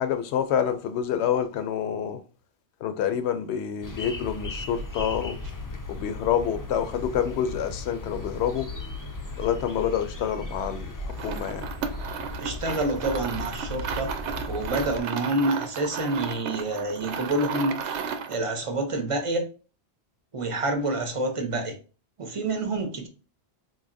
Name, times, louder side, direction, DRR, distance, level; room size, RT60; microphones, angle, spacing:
voice 1, 0.0-2.2 2.8-5.4 5.9-8.7 9.4-11.7, left 8 dB, 75° left, 0.8 m, -27 dB
sound 1, 3.8-15.0, left 2 dB, 30° left, 0.3 m, -36 dB
sound 2, 11.1-18.4, right 6 dB, 85° right, 0.9 m, -34 dB
voice 2, 12.4-14.1 14.5-19.5 20.3-21.8 22.2-23.1, right 2 dB, 35° right, 0.6 m, -28 dB
3.9 x 2.8 x 2.5 m
omnidirectional pair, 1.1 m